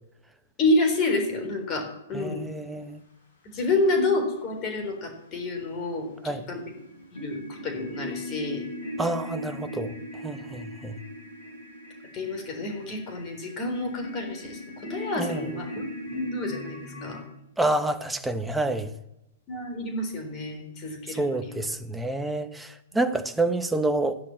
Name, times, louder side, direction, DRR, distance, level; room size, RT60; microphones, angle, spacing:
voice 1, 0.6-2.5 3.4-6.6 7.1-8.6 12.1-17.2 19.5-21.6, left 2 dB, 30° left, 3.8 m, -29 dB
voice 2, 2.1-3.0 6.2-6.4 9.0-9.9 10.2-11.0 15.1-15.5 17.6-18.9 21.1-24.2, right 2 dB, 5° right, 1.1 m, -28 dB
sound 1, 6.7-17.2, left 1 dB, 65° left, 7.1 m, -39 dB
13.0 x 10.5 x 7.7 m
hypercardioid pair, 120°, 0 cm